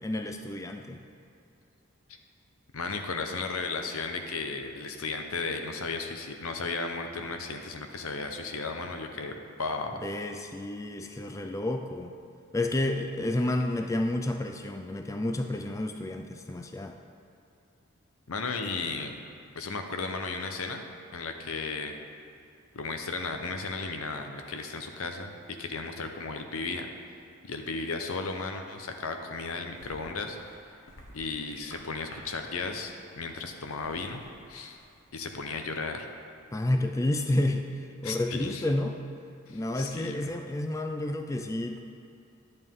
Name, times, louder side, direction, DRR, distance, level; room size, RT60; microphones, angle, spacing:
voice 1, 0.0-1.0 10.0-12.1 12.5-17.0 36.5-39.0 39.5-41.8, left 1 dB, 15° left, 5 dB, 0.3 m, -30 dB
voice 2, 2.7-10.0 18.3-19.1 19.6-20.8 21.1-22.0 22.7-25.3 25.6-26.9 27.4-30.4 31.1-34.2 34.5-34.8 35.1-36.1 38.0-38.6 39.5-40.3, left 4 dB, 85° left, 5 dB, 0.8 m, -35 dB
sound 1, 29.7-35.7, left 1 dB, 65° left, 1.2 m, -53 dB
11.0 x 7.9 x 3.7 m, 2.6 s
head